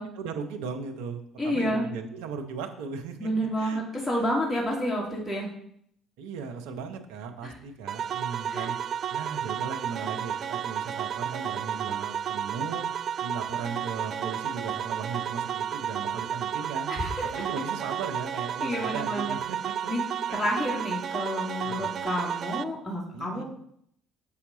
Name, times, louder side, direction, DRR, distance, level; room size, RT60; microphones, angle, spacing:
voice 1, 0.2-3.3 3.6-3.8 4.2-4.3 6.2-8.8 9.1-12.8 13.2-16.9 17.2-19.9 20.3-20.4 21.6-21.9 23.1-23.4, right 5 dB, 70° right, 4 dB, 0.9 m, -37 dB
voice 2, 1.4-1.9 3.2-5.5 7.4-7.5 8.5-8.7 16.9-17.3 18.6-19.3 19.9-20.0 20.3-23.4, equal, ahead, -3 dB, 2.3 m, -29 dB
sound 1, 7.9-22.6, right 9 dB, 50° right, 0.3 m, -32 dB
7.2 x 5.7 x 3.9 m, 0.69 s
figure-of-eight pair, 55°, 0 cm